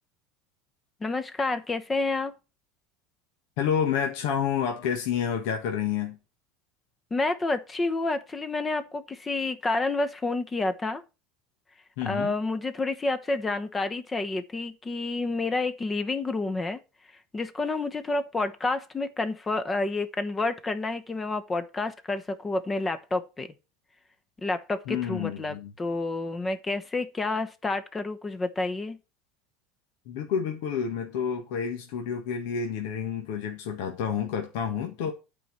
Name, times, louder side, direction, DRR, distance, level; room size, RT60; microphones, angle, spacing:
voice 1, 1.0-2.3 7.1-11.0 12.0-16.8 17.1-23.5 24.4-29.0, left 3 dB, 20° left, 1.0 m, -29 dB
voice 2, 3.6-6.2 12.0-12.3 24.9-25.7 30.1-35.1, left 7 dB, 70° left, 1.5 m, -29 dB
9.1 x 4.4 x 7.4 m
hypercardioid pair, 100°, 0 cm